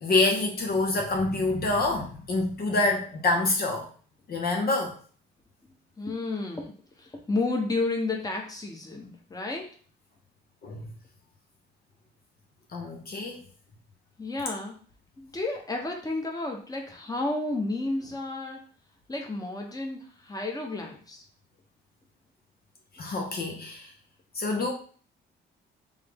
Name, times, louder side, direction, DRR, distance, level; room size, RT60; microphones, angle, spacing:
voice 1, 0.0-3.9 4.3-5.0 10.6-10.9 12.7-13.4 23.0-23.9 24.3-24.7, left 2 dB, 50° left, 1 dB, 0.9 m, -26 dB
voice 2, 6.0-6.7 7.0-9.7 14.2-14.7 15.2-18.6 19.1-21.2, left 2 dB, 20° left, 1 dB, 1.1 m, -31 dB
3.6 x 3.4 x 3.6 m, 0.43 s
cardioid pair, 90°, 20 cm